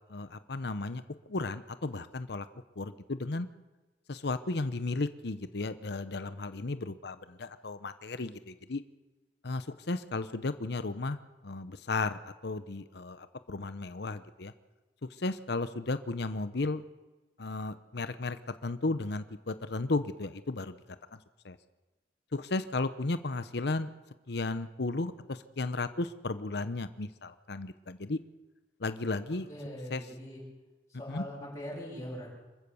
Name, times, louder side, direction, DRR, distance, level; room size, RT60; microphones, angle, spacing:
voice 1, 0.1-2.5 2.8-3.5 4.1-8.8 9.4-14.5 15.1-16.8 17.4-21.2 21.4-21.6 22.3-23.9 24.3-28.2 28.8-29.5 29.9-30.0 31.1-31.2, left 3 dB, 65° left, 12 dB, 0.8 m, -34 dB
voice 2, 29.5-30.4 31.0-32.3, equal, 20° left, -8 dB, 7.4 m, -41 dB
26.0 x 15.0 x 7.0 m, 1.2 s
head